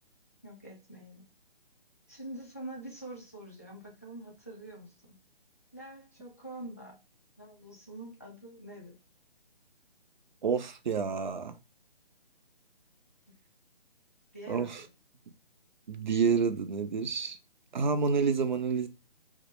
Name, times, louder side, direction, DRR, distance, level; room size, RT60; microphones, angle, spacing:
voice 1, 0.4-1.3 2.1-5.2 5.7-6.9 7.4-8.9 14.3-14.8, right 1 dB, 15° left, 0.4 m, -45 dB
voice 2, 10.4-11.6 14.5-14.8 15.9-17.4 17.7-18.9, right 5 dB, 50° right, 0.5 m, -29 dB
2.7 x 2.1 x 3.0 m
figure-of-eight pair, 145°, 30 cm